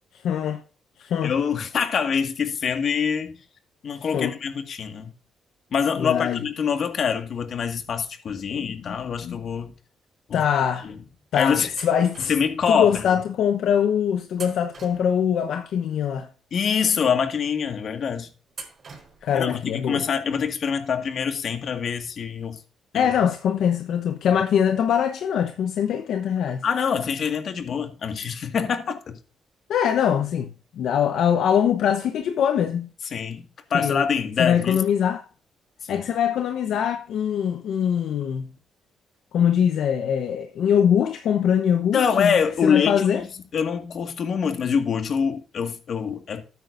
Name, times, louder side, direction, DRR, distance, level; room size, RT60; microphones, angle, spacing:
voice 1, 0.2-0.6 1.0-1.3 4.1-4.3 6.0-6.4 8.5-9.0 9.2-9.4 10.3-10.9 11.3-12.3 12.7-16.3 19.2-20.0 22.9-26.6 29.7-32.9 33.7-34.0 34.4-35.2 35.9-38.5 39.3-42.4 42.6-43.2, left 8 dB, 75° left, 0.9 m, -23 dB
voice 2, 1.2-3.3 3.8-5.1 5.7-9.7 10.3-10.4 10.8-10.9 11.3-11.7 12.3-13.1 16.5-18.3 19.3-22.6 22.9-23.1 26.6-29.2 33.1-34.8 35.8-36.0 41.9-43.2 43.5-46.4, left 6 dB, 55° left, 1.8 m, -25 dB
sound 1, 11.8-12.7 14.3-15.4 18.5-19.4, right 4 dB, 45° right, 4.1 m, -43 dB
12.5 x 9.4 x 2.6 m
cardioid pair, 90°, 0 cm